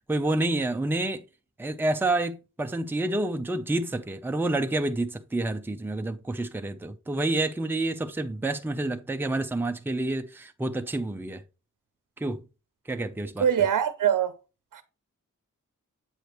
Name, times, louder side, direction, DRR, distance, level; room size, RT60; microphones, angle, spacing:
voice 1, 0.1-1.2 1.6-11.4 12.2-12.4 12.9-13.5, right 2 dB, 5° right, 0.5 m, -28 dB
voice 2, 13.4-14.3 14.7-14.8, right 8 dB, 85° right, 0.6 m, -23 dB
8.0 x 4.9 x 3.0 m
wide cardioid pair, 115°, 31 cm